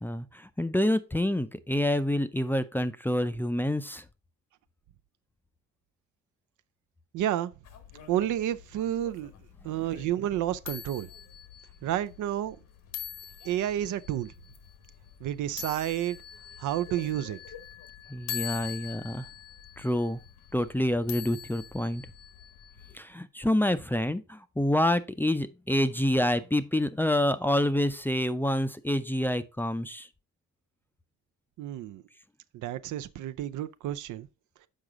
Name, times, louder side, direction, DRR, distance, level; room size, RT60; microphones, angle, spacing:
voice 1, 0.0-4.0 18.1-19.3 19.8-20.2 20.5-22.0 22.9-30.1, left 1 dB, 5° left, 0.4 m, -27 dB
voice 2, 7.1-7.5 8.1-9.3 9.6-11.1 11.8-12.6 13.4-14.3 15.2-16.2 16.6-17.4 31.6-32.0 32.5-34.3, right 12 dB, 75° right, 0.5 m, -30 dB
sound 1, 7.6-23.0, left 10 dB, 85° left, 1.3 m, -44 dB
6.5 x 4.9 x 3.6 m
cardioid pair, 90°, 30 cm